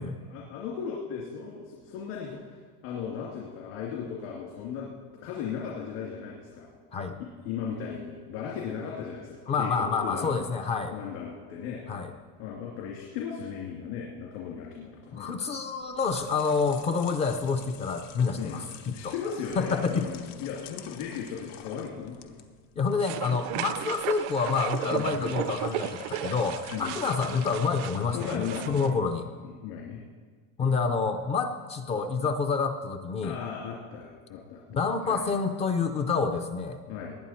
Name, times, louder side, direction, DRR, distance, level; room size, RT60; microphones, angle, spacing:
voice 1, 0.3-2.4 2.8-4.9 5.2-6.7 7.2-10.4 10.9-11.8 12.4-15.3 18.4-22.4 24.9-25.4 26.7-27.0 28.1-28.9 29.4-30.0 30.6-30.8 33.2-34.6 35.0-35.3 36.9-37.2, left 7 dB, 70° left, -3 dB, 2.6 m, -37 dB
voice 2, 9.5-11.0 11.9-12.1 15.1-19.1 19.6-20.1 22.8-29.3 30.6-33.4 34.7-36.8, left 5 dB, 20° left, 7 dB, 0.4 m, -28 dB
sound 1, 15.8-28.1, left 10 dB, 85° left, 1.2 m, -48 dB
sound 2, 23.0-28.9, right 13 dB, 50° right, 0.4 m, -35 dB
19.5 x 9.3 x 4.4 m, 1.5 s
cardioid pair, 175°, 35 cm